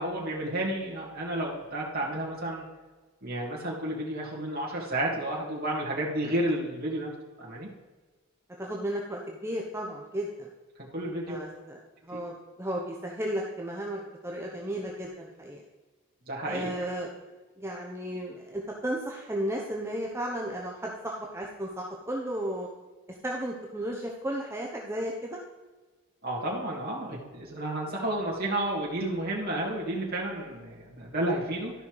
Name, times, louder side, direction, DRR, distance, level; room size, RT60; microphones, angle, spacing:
voice 1, 0.0-2.6 3.2-7.1 7.4-7.7 10.9-11.4 12.1-12.2 16.3-16.7 26.2-31.7, right 1 dB, 45° right, -4 dB, 2.1 m, -31 dB
voice 2, 8.6-10.5 11.3-11.8 12.0-15.6 16.4-17.1 17.6-22.7 23.2-25.4, right 1 dB, 10° right, -1 dB, 0.9 m, -34 dB
12.5 x 5.7 x 4.7 m, 1.3 s
head